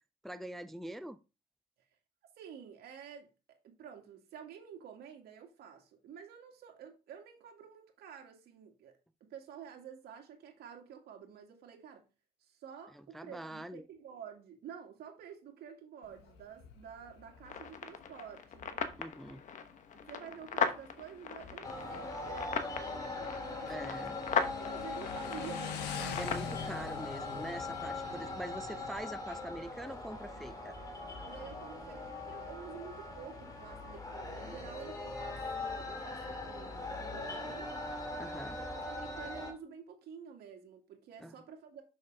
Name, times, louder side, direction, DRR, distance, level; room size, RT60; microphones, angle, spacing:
voice 1, 0.2-1.2 12.9-13.8 19.0-19.4 23.6-24.2 26.2-30.8 38.2-38.6 41.2-41.3, right 1 dB, ahead, 0.4 m, -44 dB
voice 2, 2.4-12.0 12.4-18.9 19.9-26.2 31.1-37.7 38.5-41.8, right 7 dB, 70° right, 2.4 m, -50 dB
Motorcycle, 16.0-29.0, left 7 dB, 80° left, 1.3 m, -47 dB
sound 1, 17.5-26.5, left 6 dB, 50° left, 1.1 m, -38 dB
sound 2, 21.6-39.5, left 2 dB, 20° left, 2.3 m, -41 dB
6.6 x 6.4 x 3.5 m
cardioid pair, 110°, 17 cm